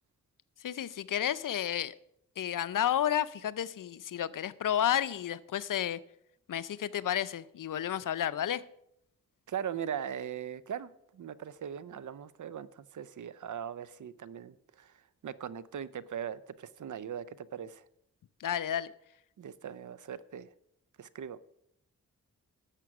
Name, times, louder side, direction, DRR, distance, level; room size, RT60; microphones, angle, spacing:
voice 1, 0.6-1.9 2.4-6.0 6.5-8.6 18.4-18.9, left 10 dB, 65° left, 0.6 m, -31 dB
voice 2, 9.5-14.9 15.2-17.8 19.4-20.5 21.0-21.4, right 8 dB, 60° right, 0.6 m, -40 dB
11.0 x 7.5 x 5.9 m
cardioid pair, 50°, 35 cm